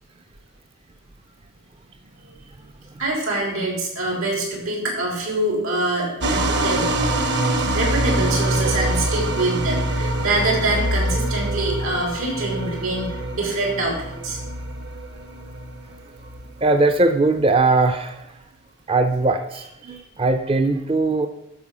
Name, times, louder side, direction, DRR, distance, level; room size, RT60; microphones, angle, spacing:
voice 1, 3.0-6.9 7.6-14.4 19.9-20.0, right 2 dB, 90° right, -1 dB, 3.6 m, -25 dB
sound 1, 6.2-17.1, right 1 dB, 55° right, 1.0 m, -25 dB
voice 2, 16.6-18.3 18.9-21.3, right 2 dB, 25° right, 7 dB, 0.4 m, -20 dB
12.5 x 4.5 x 6.1 m, 0.86 s
head